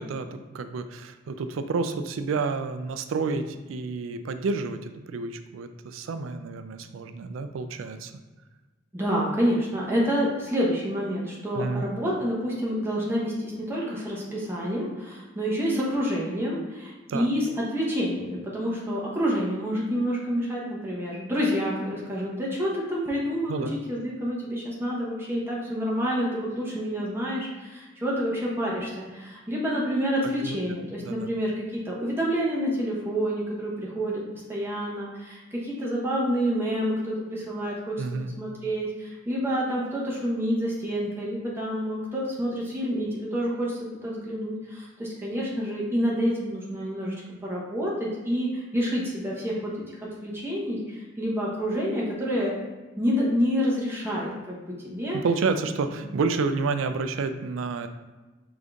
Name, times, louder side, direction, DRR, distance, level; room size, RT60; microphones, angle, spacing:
voice 1, 0.0-8.1 11.5-11.8 17.1-17.3 23.5-23.8 30.4-30.6 31.0-31.3 38.0-38.3 55.2-57.9, right 4 dB, 90° right, 9 dB, 0.4 m, -29 dB
voice 2, 8.9-34.2 34.5-38.0 38.2-47.1 47.4-52.6 52.9-55.2, equal, 10° right, -5 dB, 1.0 m, -28 dB
5.1 x 3.9 x 2.4 m, 1.2 s
head